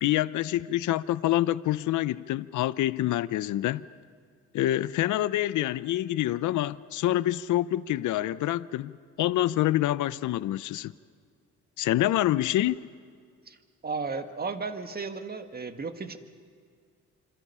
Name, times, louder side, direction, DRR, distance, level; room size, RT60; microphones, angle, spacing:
voice 1, 0.0-3.8 4.5-10.9 11.8-12.8, left 14 dB, 80° left, 0.7 m, -26 dB
voice 2, 13.8-16.2, right 4 dB, 30° right, 1.8 m, -34 dB
27.5 x 26.0 x 5.6 m
cardioid pair, 90°, 30 cm